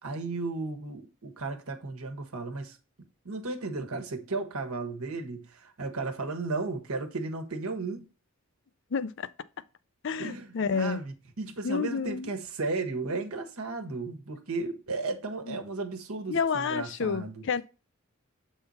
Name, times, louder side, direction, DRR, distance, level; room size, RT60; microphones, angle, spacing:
voice 1, 0.0-2.8 3.2-8.1 10.2-17.5, right 3 dB, 90° right, 1.3 m, -34 dB
voice 2, 8.9-9.3 10.0-11.0 11.6-12.3 15.5-15.6 16.3-17.6, left 5 dB, 60° left, 0.5 m, -29 dB
7.8 x 3.8 x 4.1 m
head